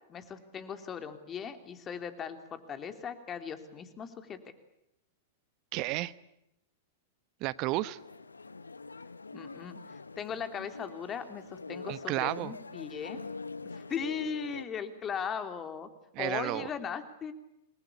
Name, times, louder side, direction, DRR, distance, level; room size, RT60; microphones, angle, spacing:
voice 1, 0.1-4.4 9.3-13.2 13.7-15.9 16.2-17.3, left 7 dB, 25° left, 8 dB, 3.1 m, -38 dB
voice 2, 5.7-6.1 7.4-8.0 11.9-12.5 16.1-16.7, right 18 dB, 45° right, 17 dB, 1.1 m, -32 dB
sound 1, 8.0-14.7, left 4 dB, 90° left, 0.9 m, -44 dB
27.5 x 21.0 x 8.5 m, 0.84 s
hypercardioid pair, 100°, 0 cm